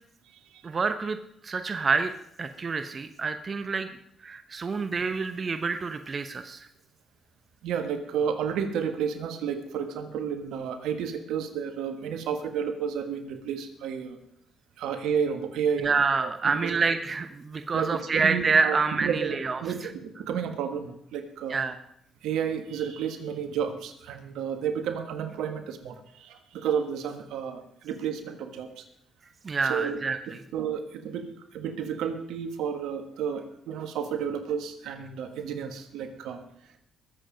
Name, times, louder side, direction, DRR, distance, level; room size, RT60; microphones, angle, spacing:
voice 1, 0.6-1.2 1.4-2.1 2.4-3.9 4.2-6.7 15.8-19.9 21.5-21.7 29.4-30.2, right 4 dB, 45° right, 8 dB, 1.0 m, -27 dB
voice 2, 7.6-14.2 14.8-15.9 16.2-16.8 17.7-21.6 22.2-28.8 29.7-30.0 30.5-31.3 31.5-36.4, right 7 dB, 80° right, 7 dB, 1.5 m, -31 dB
21.0 x 7.8 x 5.2 m, 0.72 s
supercardioid pair, 60°, 0 cm